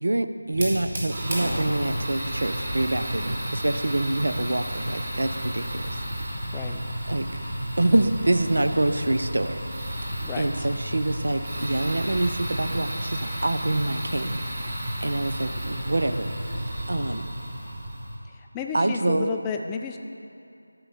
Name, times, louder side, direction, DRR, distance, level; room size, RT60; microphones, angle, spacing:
voice 1, 0.0-5.9 7.1-7.3 7.8-9.6 10.0-14.8 15.0-16.3 16.9-17.3 18.7-19.3, right 2 dB, 65° right, 10 dB, 0.5 m, -26 dB
Fire, 0.5-18.1, right 1 dB, 40° right, 1.8 m, -32 dB
voice 2, 10.2-10.7 18.5-20.0, left 6 dB, 10° left, 4 dB, 0.3 m, -32 dB
12.5 x 4.5 x 5.2 m, 2.6 s
figure-of-eight pair, 165°, 0 cm